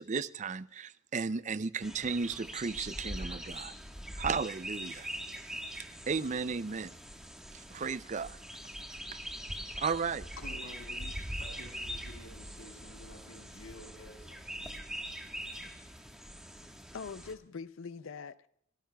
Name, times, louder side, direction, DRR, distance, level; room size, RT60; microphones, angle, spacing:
voice 1, 0.0-3.7 4.2-5.1 6.1-6.9 7.5-8.4 9.8-10.3, right 5 dB, 35° right, 0.4 m, -34 dB
sound 1, 1.8-17.3, equal, 5° right, 1.4 m, -42 dB
voice 2, 10.4-14.6, left 1 dB, 85° left, 5.2 m, -51 dB
voice 3, 16.9-18.5, left 5 dB, 65° left, 0.5 m, -43 dB
29.5 x 13.5 x 2.3 m
head